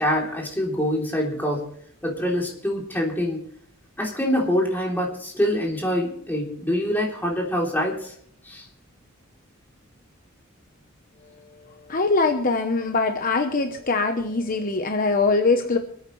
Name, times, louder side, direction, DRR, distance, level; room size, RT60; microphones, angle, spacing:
voice 1, 0.0-1.6 2.0-3.4 4.0-8.1 8.4-8.6, equal, 10° left, -2 dB, 3.3 m, -25 dB
voice 2, 11.9-15.8, left 3 dB, 40° left, 5 dB, 0.9 m, -22 dB
26.5 x 9.0 x 3.2 m, 0.63 s
head